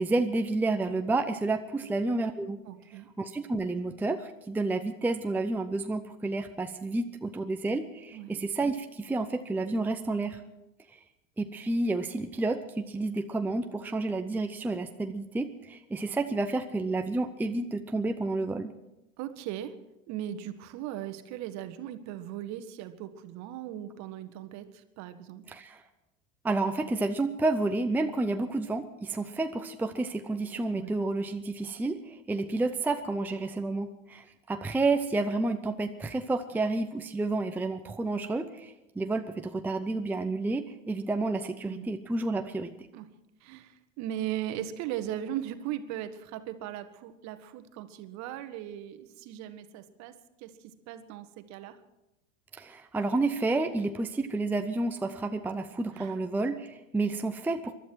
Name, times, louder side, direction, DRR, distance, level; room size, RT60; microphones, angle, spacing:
voice 1, 0.0-2.6 3.2-10.4 11.4-18.7 25.5-25.8 26.4-42.7 52.5-57.7, right 2 dB, 5° right, 6 dB, 0.6 m, -30 dB
voice 2, 2.7-3.1 8.1-8.4 19.2-19.8 20.1-25.4 30.7-31.0 41.7-41.9 42.9-43.1 43.4-51.8 55.9-56.1, right 11 dB, 45° right, 10 dB, 1.4 m, -38 dB
23.0 x 12.0 x 4.6 m, 0.94 s
hypercardioid pair, 90°, 39 cm